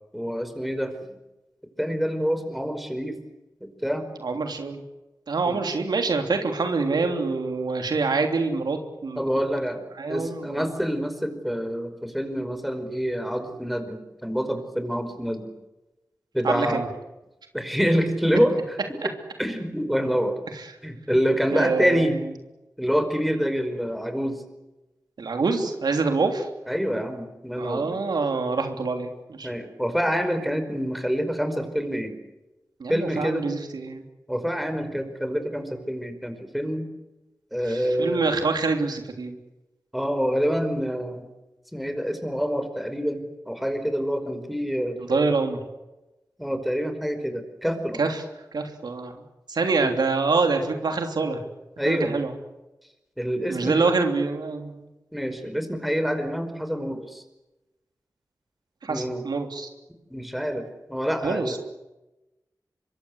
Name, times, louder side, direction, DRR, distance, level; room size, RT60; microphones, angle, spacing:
voice 1, 0.1-1.0 1.8-3.2 3.6-4.1 5.5-5.6 9.2-9.8 10.1-15.5 16.3-16.8 17.5-19.0 19.4-20.4 20.8-22.2 22.8-24.4 26.7-27.9 29.4-32.2 32.9-33.5 34.3-36.9 37.5-38.3 39.9-41.2 41.7-45.3 46.4-48.0 49.8-50.0 51.8-52.2 53.2-53.9 55.1-57.2 58.9-59.3 60.1-61.6, equal, ahead, 8 dB, 5.2 m, -26 dB
voice 2, 4.2-4.8 5.3-9.2 10.0-10.7 16.4-16.9 20.5-20.6 21.5-22.1 25.2-26.5 27.6-29.5 32.8-34.0 37.7-39.4 45.1-45.6 48.0-48.2 48.5-49.2 49.5-51.4 51.8-52.3 53.5-54.8 58.8-59.7 61.2-61.6, right 4 dB, 90° right, 5 dB, 3.2 m, -26 dB
25.0 x 23.0 x 8.2 m, 1.0 s
cardioid pair, 55°, 7 cm